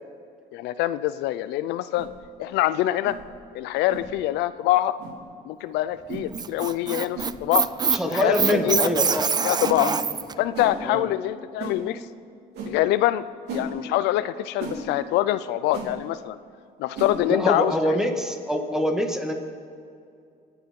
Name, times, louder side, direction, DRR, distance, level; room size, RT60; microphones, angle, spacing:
voice 1, 0.5-2.1 2.4-3.2 3.5-5.0 5.5-7.7 8.0-8.9 9.4-9.9 10.4-12.0 12.7-13.2 13.5-16.4 16.8-18.0, left 14 dB, 90° left, 14 dB, 0.5 m, -24 dB
sound 1, 1.9-2.1 3.0-3.2 3.9-4.1 5.0-5.1 6.1-6.3 7.1-7.3 8.5-8.7 9.6-9.8 10.5-10.7 11.6-11.8 12.5-12.7 13.5-13.7 14.6-14.8 15.7-15.9 16.9-17.1, right 3 dB, 80° right, 3.3 m, -34 dB
Squeak, 6.1-10.3, right 6 dB, 25° right, 0.4 m, -25 dB
voice 2, 7.9-9.3 9.8-10.0 10.8-11.1 17.3-19.3, equal, 5° right, 4 dB, 1.9 m, -25 dB
25.5 x 9.3 x 5.4 m, 2.5 s
cardioid pair, 110°, 17 cm